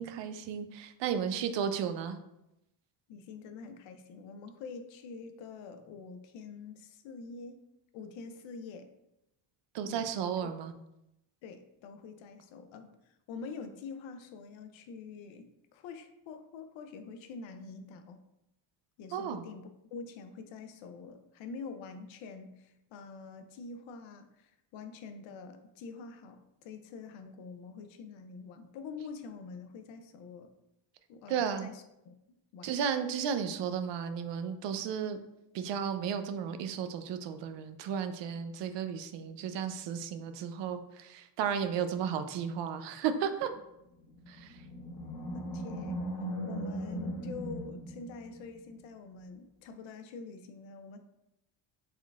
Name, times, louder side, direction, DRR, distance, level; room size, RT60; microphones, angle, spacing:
voice 1, 0.0-2.2 9.7-10.7 19.1-19.4 31.3-31.7 32.6-35.2 35.5-43.5 44.3-44.6, right 7 dB, 65° right, 9 dB, 0.5 m, -34 dB
voice 2, 3.1-7.6 7.9-8.9 9.9-10.1 11.4-18.2 19.0-30.5 31.1-32.2 32.5-32.7 45.3-46.0 46.4-51.0, left 5 dB, 75° left, 8 dB, 0.6 m, -46 dB
Animal, 44.0-48.6, right 1 dB, 50° left, 1.0 m, -38 dB
4.4 x 3.8 x 2.3 m, 0.87 s
cardioid pair, 140°, 47 cm